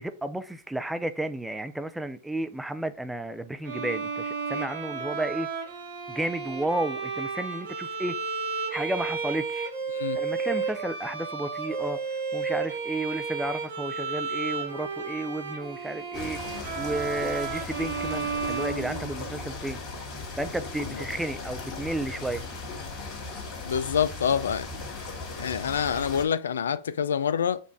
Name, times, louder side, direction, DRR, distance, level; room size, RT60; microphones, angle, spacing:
voice 1, 0.0-5.5 6.1-8.2 8.7-9.7 10.1-12.0 12.3-19.8 20.4-22.4, right 1 dB, 5° right, 0.4 m, -32 dB
Bowed string instrument, 3.6-19.5, right 5 dB, 65° right, 1.9 m, -33 dB
sound 1, 16.1-26.3, left 3 dB, 40° left, 2.1 m, -37 dB
voice 2, 23.7-24.7 25.4-27.6, left 7 dB, 80° left, 0.3 m, -26 dB
5.2 x 2.5 x 3.4 m
hypercardioid pair, 105°, 0 cm